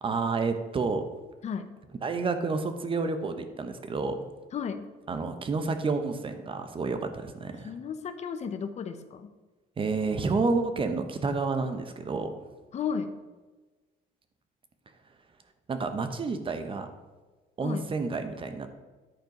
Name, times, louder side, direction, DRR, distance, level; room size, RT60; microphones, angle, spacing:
voice 1, 0.0-1.0 2.0-4.2 5.1-7.7 9.8-12.3 15.7-16.9 17.6-18.7, right 4 dB, 30° right, 8 dB, 0.9 m, -29 dB
voice 2, 4.5-4.9 7.6-9.3 12.7-13.1 17.6-17.9, left 6 dB, 40° left, 9 dB, 0.7 m, -34 dB
10.5 x 4.5 x 5.2 m, 1.3 s
cardioid pair, 110°, 17 cm